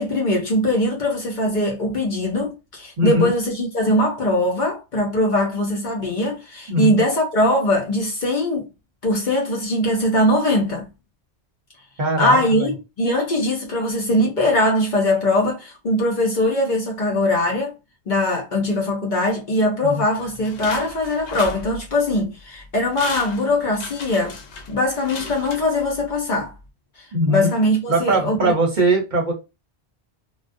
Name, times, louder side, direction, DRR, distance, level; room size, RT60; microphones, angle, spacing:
voice 1, 0.0-8.7 9.0-10.9 12.2-12.7 13.0-17.7 18.1-24.4 24.7-26.5 27.3-28.5, left 1 dB, 50° left, 0.8 m, -21 dB
voice 2, 3.0-3.3 6.7-7.0 12.0-12.4 19.8-20.0 27.1-27.5 27.9-29.3, right 1 dB, 50° right, 0.8 m, -20 dB
sound 1, 20.2-22.2 22.6-22.7 22.9-26.1 26.5-26.6, left 4 dB, 85° left, 0.9 m, -35 dB
2.3 x 2.1 x 2.5 m
omnidirectional pair, 1.1 m